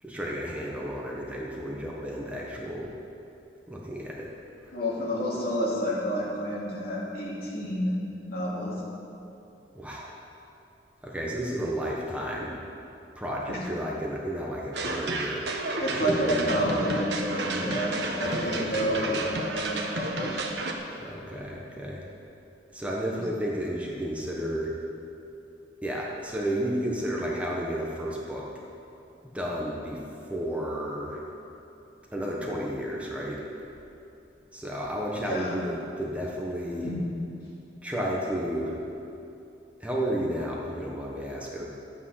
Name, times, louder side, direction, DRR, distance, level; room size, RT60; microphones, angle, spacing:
voice 1, 0.0-3.0 3.7-4.3 4.6-4.7 9.7-10.1 11.0-12.6 13.1-15.5 15.9-16.8 18.2-19.3 21.0-22.0 22.7-24.7 25.8-28.5 29.2-30.0 30.3-31.2 32.1-33.4 34.5-36.9 37.8-38.8 39.8-41.6, equal, 10° right, -4 dB, 1.3 m, -32 dB
voice 2, 4.7-7.9 8.3-8.7 13.5-13.6 15.8-20.5 23.1-23.2 35.2-35.6 36.8-37.1, equal, 55° left, -5 dB, 2.8 m, -29 dB
sound 1, 14.7-20.7, right 2 dB, 70° right, 1.1 m, -31 dB
12.0 x 8.8 x 5.8 m, 2.8 s
head